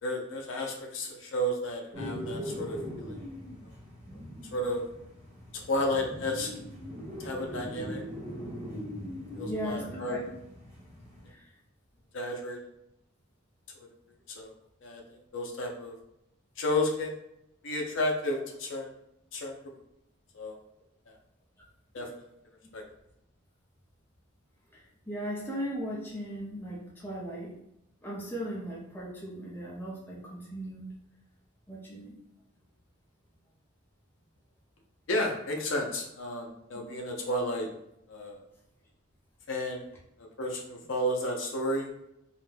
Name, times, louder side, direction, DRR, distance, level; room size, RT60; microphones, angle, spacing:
voice 1, 0.0-3.2 4.5-4.8 5.5-6.5 7.2-8.0 9.3-10.2 12.1-12.6 13.8-13.9 14.3-14.5 14.8-16.0 16.6-17.2 17.6-18.9 19.3-19.6 20.3-20.6 21.1-21.2 21.9-22.3 22.7-22.8 35.1-37.7 38.1-38.4 39.5-39.8 40.2-41.9, left 1 dB, 70° left, 1 dB, 0.5 m, -32 dB
sound 1, 1.9-11.3, equal, 40° right, 0.9 m, -40 dB
voice 2, 9.4-10.2 11.3-11.5 24.7-27.5 28.0-30.9 31.7-32.1, equal, 10° left, -5 dB, 0.5 m, -37 dB
2.4 x 2.1 x 3.2 m, 0.80 s
head